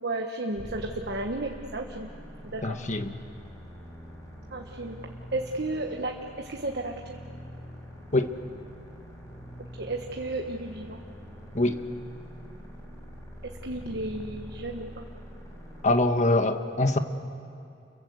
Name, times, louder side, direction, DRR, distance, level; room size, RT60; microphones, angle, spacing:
voice 1, 0.0-2.1 2.5-2.6 4.5-5.0 5.3-7.2 9.8-11.0 13.6-15.0, right 2 dB, 60° right, 2 dB, 1.3 m, -33 dB
sound 1, 0.6-15.9, equal, 20° left, 6.2 m, -44 dB
voice 2, 2.6-3.1 8.1-8.3 11.5-11.8 15.8-17.0, left 2 dB, 40° left, 7 dB, 1.3 m, -24 dB
29.5 x 22.0 x 8.0 m, 2.6 s
head